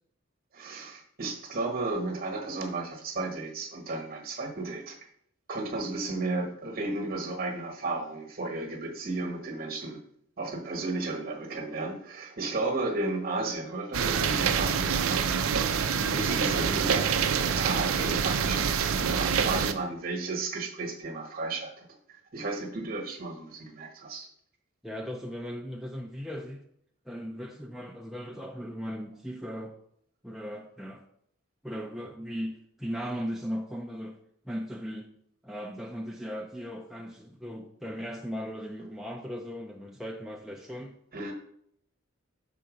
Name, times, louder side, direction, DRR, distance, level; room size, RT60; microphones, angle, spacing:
voice 1, 0.5-5.0 5.5-10.0 10.4-15.6 16.0-24.3 41.1-41.3, right 2 dB, 45° right, 4 dB, 1.2 m, -34 dB
sound 1, 13.9-19.7, right 6 dB, 85° right, 0.5 m, -26 dB
voice 2, 24.8-26.6 27.1-29.8 30.2-31.0 31.6-34.2 34.4-35.1 35.4-40.9, equal, ahead, -1 dB, 0.4 m, -37 dB
5.7 x 3.8 x 5.1 m, 0.68 s
head